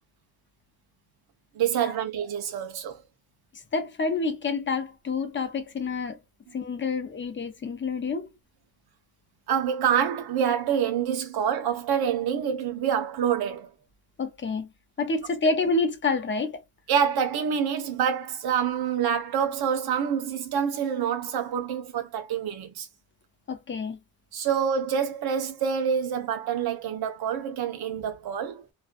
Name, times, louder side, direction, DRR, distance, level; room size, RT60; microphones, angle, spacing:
voice 1, 1.5-3.0 9.5-13.7 16.9-22.9 24.3-28.6, right 8 dB, 85° right, 0.7 m, -27 dB
voice 2, 3.7-6.2 6.5-8.3 14.2-14.7 15.0-16.6 23.5-24.0, left 3 dB, 30° left, 0.6 m, -28 dB
2.5 x 2.2 x 2.5 m
cardioid pair, 125°, 37 cm